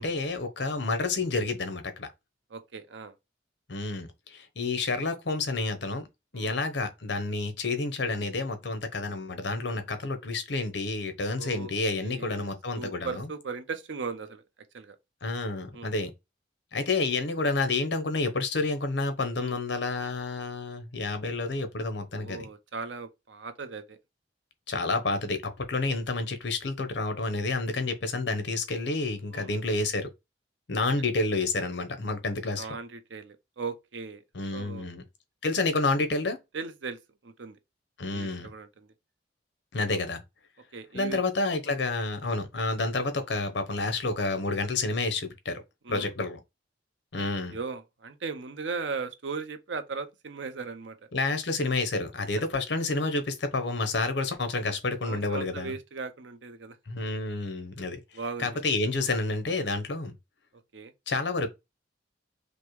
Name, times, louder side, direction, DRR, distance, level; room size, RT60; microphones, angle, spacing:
voice 1, 0.0-2.1 3.7-6.1 6.3-13.2 15.2-16.1 16.7-22.4 24.7-30.1 30.7-32.7 34.3-35.0 35.4-36.4 38.0-38.5 39.7-40.2 40.9-45.6 45.9-46.4 47.1-47.5 51.1-55.7 56.9-58.0 58.4-60.1 61.1-61.5, left 3 dB, 65° left, 0.8 m, -29 dB
voice 2, 2.5-3.1 6.3-6.6 11.4-11.7 12.0-14.4 14.7-15.0 15.7-15.9 19.4-19.6 22.1-24.0 29.3-29.5 32.6-34.2 34.5-34.9 36.5-37.6 38.1-38.9 40.7-41.2 41.6-41.8 45.8-46.1 47.1-51.0 55.0-56.8 58.1-58.6 59.0-59.1 60.7-60.9, right 4 dB, 80° right, 0.7 m, -38 dB
5.2 x 2.1 x 3.1 m
head